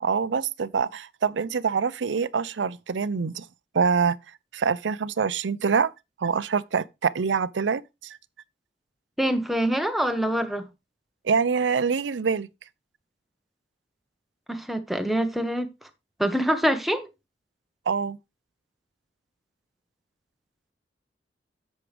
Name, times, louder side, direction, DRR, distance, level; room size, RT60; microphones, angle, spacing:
voice 1, 0.0-3.5 3.7-4.2 4.5-5.9 6.2-8.2 11.2-12.5 17.9-18.2, right 5 dB, 90° right, 0.5 m, -25 dB
voice 2, 9.2-10.7 14.5-15.7 16.2-17.1, equal, ahead, 1.2 m, -25 dB
11.0 x 7.4 x 3.4 m
head